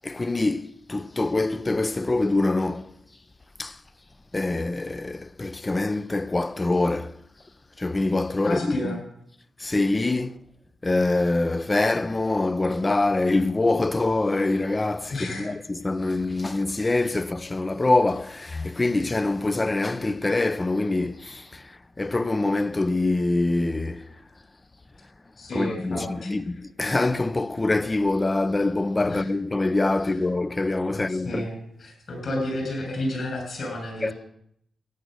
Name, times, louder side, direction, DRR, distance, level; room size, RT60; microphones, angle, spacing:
voice 1, 0.0-2.9 3.6-3.8 4.3-7.2 7.8-9.0 9.6-10.4 10.8-24.1 25.5-31.5 34.0-34.1, left 2 dB, 20° left, 0.5 m, -25 dB
voice 2, 8.4-9.0 15.1-15.5 25.4-26.3 29.1-29.3 30.1-30.2 30.9-34.1, left 1 dB, 55° left, 7.0 m, -31 dB
15.0 x 10.0 x 6.5 m
wide cardioid pair, 135°, 0 cm